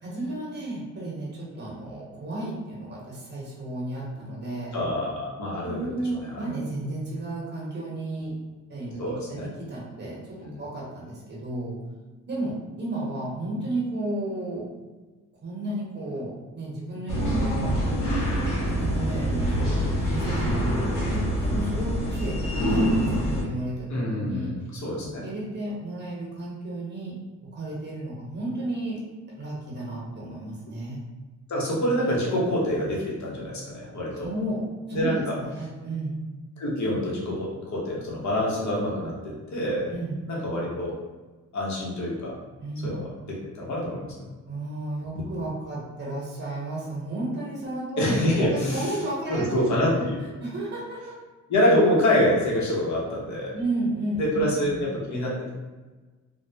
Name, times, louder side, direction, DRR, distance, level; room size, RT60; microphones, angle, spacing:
voice 1, 0.0-4.8 5.6-8.4 8.7-11.8 12.3-14.7 15.4-17.8 18.8-24.5 25.0-27.1 27.5-29.0 29.4-31.0 34.2-36.2 39.9-40.2 42.6-42.9 44.5-50.1 50.4-51.2 53.5-54.8, right 2 dB, 35° right, -5 dB, 1.0 m, -33 dB
voice 2, 4.7-5.9 6.2-6.4 9.0-9.5 10.4-10.6 23.9-25.3 31.5-34.3 34.9-35.4 36.6-39.9 40.3-40.9 41.5-42.4 42.8-44.1 48.0-48.9 49.3-50.2 51.5-53.5 54.2-55.5, left 1 dB, 60° left, -4 dB, 0.9 m, -26 dB
sound 1, 17.1-23.4, equal, 90° left, 0.8 m, -25 dB
2.2 x 2.1 x 2.7 m, 1.3 s
cardioid pair, 70°, 31 cm